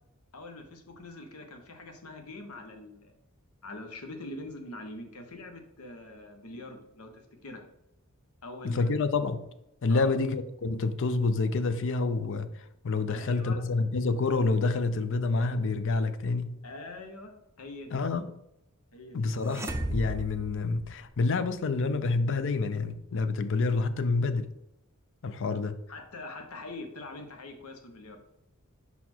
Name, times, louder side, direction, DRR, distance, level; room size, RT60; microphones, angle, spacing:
voice 1, 0.3-3.1 3.6-7.6 8.4-9.0 9.9-10.1 13.1-13.6 16.6-18.0 18.9-19.3 25.9-28.2, left 2 dB, 85° left, 1.1 m, -43 dB
voice 2, 8.6-9.4 9.8-12.5 12.8-16.5 17.9-18.4 19.1-24.5 25.2-25.8, left 3 dB, 60° left, 0.5 m, -28 dB
sound 1, 19.4-21.4, right 1 dB, 15° right, 0.5 m, -35 dB
5.6 x 4.2 x 4.4 m
head